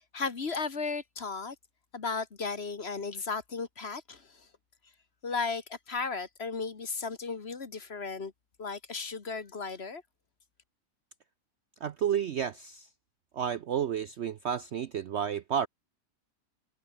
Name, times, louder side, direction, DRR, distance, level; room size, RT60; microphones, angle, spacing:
voice 1, 0.0-1.5 1.9-4.5 5.2-8.3 8.6-10.0, left 4 dB, 40° left, 1.7 m, -35 dB
voice 2, 11.8-12.9 13.3-15.7, right 8 dB, 60° right, 0.7 m, -31 dB
omnidirectional pair, 1.7 m